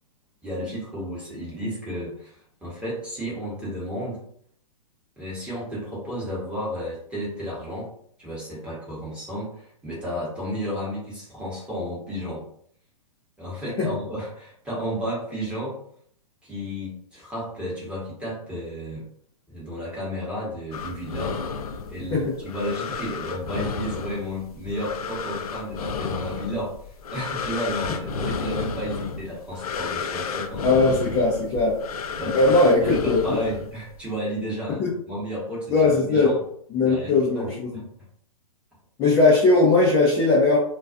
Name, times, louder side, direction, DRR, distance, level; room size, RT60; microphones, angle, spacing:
voice 1, 0.4-4.2 5.2-7.9 8.2-12.4 13.4-15.8 16.4-19.0 19.5-21.4 21.9-31.1 32.1-36.4 36.9-37.8, equal, 5° right, -6 dB, 1.0 m, -32 dB
sound 1, 20.7-34.0, left 5 dB, 70° left, 0.4 m, -32 dB
voice 2, 30.6-31.8 32.3-33.4 34.8-34.9 35.7-36.3 36.7-37.8 39.0-40.6, left 3 dB, 20° left, -5 dB, 0.5 m, -19 dB
2.3 x 2.3 x 2.4 m, 0.64 s
hypercardioid pair, 130°, 19 cm